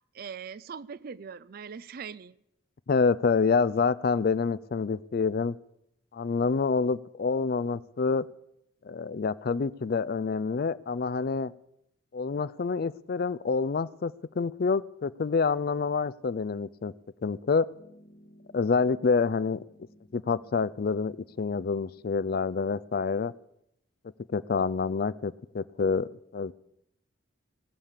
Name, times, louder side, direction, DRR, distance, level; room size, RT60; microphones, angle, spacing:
voice 1, 0.1-2.4, right 6 dB, 50° right, 18 dB, 0.4 m, -41 dB
voice 2, 2.9-5.6 6.1-8.3 8.8-11.5 12.1-16.9 17.2-17.7 18.5-19.6 20.1-23.3 24.3-26.5, left 4 dB, 50° left, 18 dB, 0.4 m, -27 dB
Piano, 17.7-22.8, equal, 80° left, 2.4 m, -58 dB
18.5 x 7.3 x 6.7 m, 0.79 s
head